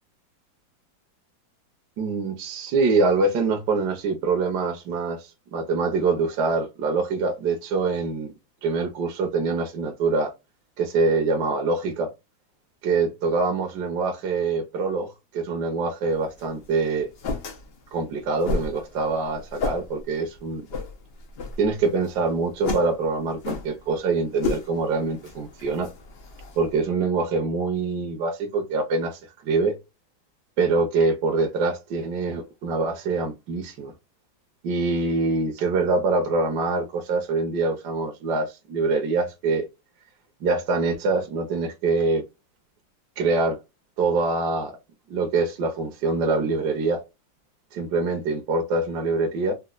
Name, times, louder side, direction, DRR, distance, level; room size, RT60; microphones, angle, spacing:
voice 1, 2.0-8.3 8.6-10.3 10.8-12.1 12.8-17.1 17.9-20.7 21.6-25.9 26.6-29.8 30.6-33.9 34.6-39.7 40.4-42.2 43.2-43.6 44.0-44.8 45.1-47.0 47.7-49.5, right 3 dB, 65° right, 1.2 m, -24 dB
sound 1, 16.1-26.8, left 4 dB, 85° left, 0.5 m, -34 dB
4.2 x 2.2 x 2.3 m
omnidirectional pair, 2.1 m